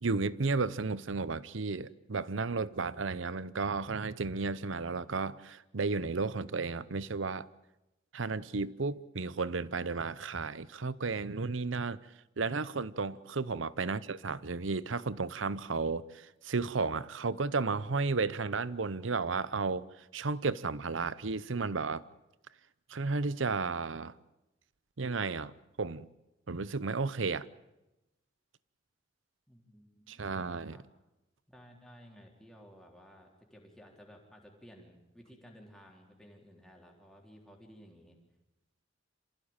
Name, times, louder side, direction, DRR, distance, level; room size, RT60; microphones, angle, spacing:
voice 1, 0.0-7.5 8.1-12.0 12.4-22.0 22.9-24.1 25.0-25.5 25.8-26.1 26.5-27.5 30.1-30.8, right 4 dB, 80° right, 0.8 m, -33 dB
voice 2, 29.5-30.8 31.5-38.2, equal, 5° left, 3.8 m, -56 dB
26.5 x 16.0 x 8.9 m
head